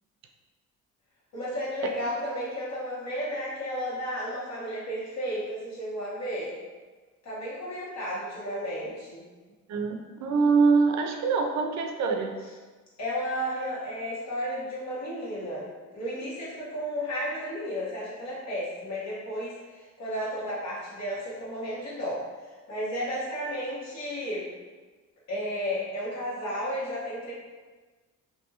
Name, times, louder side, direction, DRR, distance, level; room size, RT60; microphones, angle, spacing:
voice 1, 1.3-6.6 7.2-9.2 13.0-22.2 22.7-24.4 25.3-27.3, equal, 60° left, -7 dB, 1.3 m, -33 dB
voice 2, 9.7-12.4, right 4 dB, 65° right, 4 dB, 0.4 m, -24 dB
2.8 x 2.7 x 2.3 m, 1.4 s
cardioid pair, 90°, 30 cm